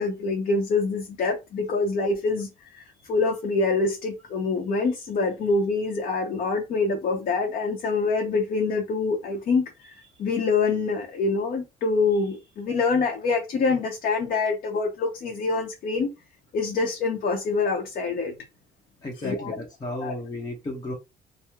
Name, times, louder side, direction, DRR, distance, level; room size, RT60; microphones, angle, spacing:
voice 1, 0.0-16.1 16.5-18.3 19.2-19.5 20.0-20.1, left 4 dB, 55° left, 0.7 m, -25 dB
voice 2, 19.0-20.9, left 1 dB, 25° left, 0.8 m, -33 dB
2.8 x 2.0 x 3.4 m
cardioid pair, 110°, 17 cm